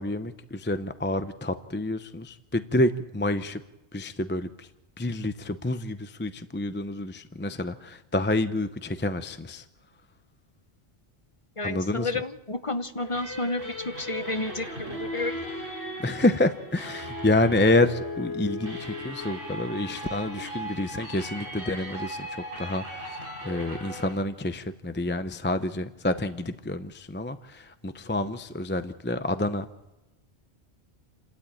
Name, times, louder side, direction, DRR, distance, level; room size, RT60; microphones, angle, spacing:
voice 1, 0.0-3.6 3.9-4.7 5.0-9.6 11.6-12.1 16.0-22.3 22.6-23.2 23.4-29.7, left 2 dB, 10° left, 10 dB, 0.6 m, -28 dB
voice 2, 11.6-15.4, left 2 dB, 30° left, 10 dB, 1.0 m, -31 dB
sound 1, 13.0-24.1, left 1 dB, 55° right, 6.1 m, -37 dB
28.5 x 13.0 x 9.1 m, 1.0 s
omnidirectional pair, 1.1 m